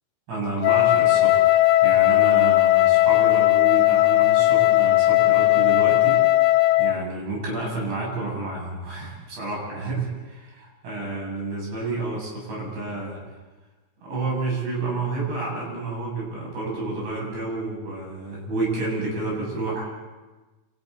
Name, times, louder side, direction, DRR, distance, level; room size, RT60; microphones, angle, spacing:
voice 1, 0.3-1.5 1.8-6.2 6.8-13.2 14.0-19.8, right 2 dB, 65° right, -3 dB, 10.0 m, -30 dB
Wind instrument woodwind instrument, 0.6-7.0, left 16 dB, 90° left, 3.4 m, -17 dB
29.5 x 29.5 x 4.2 m, 1.2 s
omnidirectional pair, 5.5 m